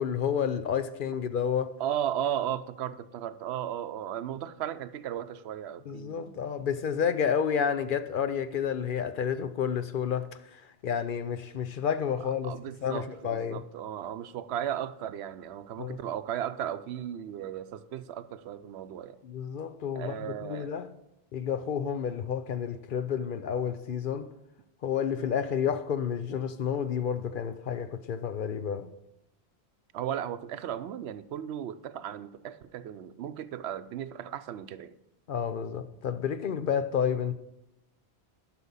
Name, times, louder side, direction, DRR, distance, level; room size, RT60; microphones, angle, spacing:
voice 1, 0.0-1.7 5.9-13.6 15.8-16.0 19.2-20.9 21.3-24.3 24.8-28.9 35.3-37.3, left 7 dB, 60° left, 0.7 m, -30 dB
voice 2, 1.8-6.4 12.4-19.2 19.9-20.7 29.9-34.9, right 10 dB, 85° right, 0.8 m, -35 dB
11.5 x 6.0 x 5.5 m
omnidirectional pair, 1.1 m